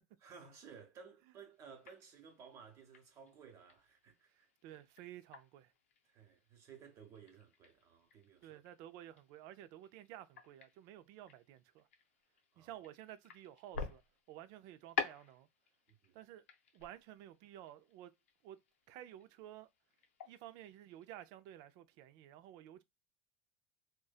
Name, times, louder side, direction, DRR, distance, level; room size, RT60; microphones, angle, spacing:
voice 1, 0.2-4.8 6.0-8.6 12.5-12.8 15.9-16.2, right 6 dB, 50° right, 1.0 m, -57 dB
sound 1, 1.5-21.3, left 6 dB, 90° left, 0.5 m, -50 dB
voice 2, 4.3-5.7 8.4-11.9 12.6-14.0 14.3-15.5 16.1-16.4 16.7-18.1 18.4-18.6 18.9-19.7 20.3-22.8, right 12 dB, 65° right, 0.4 m, -53 dB
2.6 x 2.2 x 2.3 m
hypercardioid pair, 90°, 7 cm